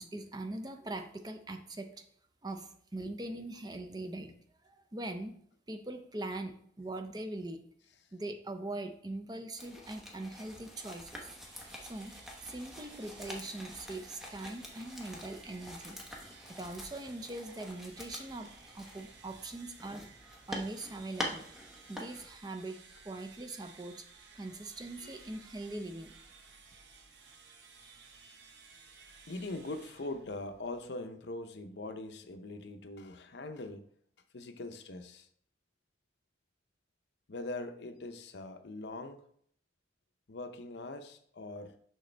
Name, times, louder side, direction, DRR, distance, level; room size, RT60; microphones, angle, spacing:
voice 1, 0.0-2.1 2.4-4.4 4.6-7.6 8.1-11.4 11.8-12.2 12.4-16.0 16.5-20.0 20.5-21.5 21.9-22.8 23.0-24.1 24.3-26.1, right 2 dB, 20° right, 7 dB, 0.5 m, -42 dB
sound 1, 9.6-22.3, equal, ahead, 1.0 m, -46 dB
sound 2, 11.5-30.9, right 4 dB, 75° right, 1.0 m, -56 dB
voice 2, 29.3-33.9 34.3-35.3 37.3-39.2 40.3-41.7, left 2 dB, 70° left, 8 dB, 0.7 m, -42 dB
6.4 x 6.0 x 3.3 m, 0.63 s
head